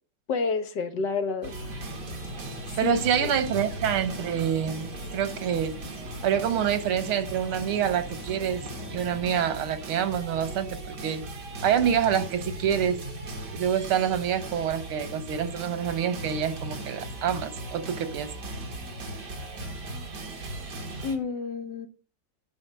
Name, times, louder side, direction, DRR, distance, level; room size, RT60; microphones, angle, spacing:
voice 1, 0.3-1.5 2.7-3.0 21.0-21.9, left 4 dB, 60° left, 1.7 m, -29 dB
sound 1, 1.4-21.2, right 1 dB, 55° right, 2.4 m, -38 dB
Bird vocalization bird call bird song, 1.6-9.9, left 6 dB, 75° left, 1.9 m, -46 dB
voice 2, 2.8-5.7 6.2-8.6 8.9-11.2 11.6-13.0 13.5-18.3, right 9 dB, 85° right, 2.0 m, -27 dB
10.5 x 5.2 x 7.5 m
omnidirectional pair, 2.3 m